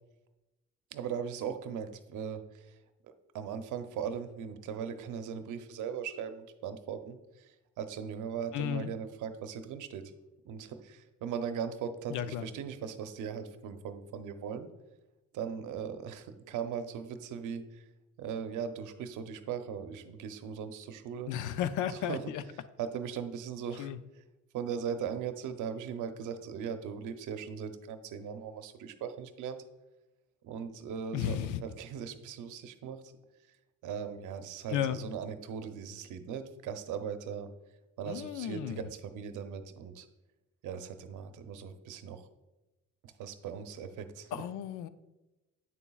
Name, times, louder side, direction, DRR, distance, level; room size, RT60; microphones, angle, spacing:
voice 1, 0.9-2.7 3.3-10.1 10.4-14.7 15.3-17.8 18.2-21.3 21.9-22.2 22.8-23.9 24.5-29.6 30.4-33.1 33.8-37.5 38.0-40.1 40.6-42.3 43.2-44.4, right 7 dB, 85° right, 9 dB, 0.7 m, -39 dB
voice 2, 8.5-8.9 12.1-12.5 21.3-22.4 23.8-24.0 31.1-31.6 34.7-35.0 38.0-38.8 44.3-44.9, left 10 dB, 85° left, 14 dB, 0.5 m, -34 dB
8.6 x 7.0 x 2.3 m, 1.0 s
cardioid pair, 90°, 30 cm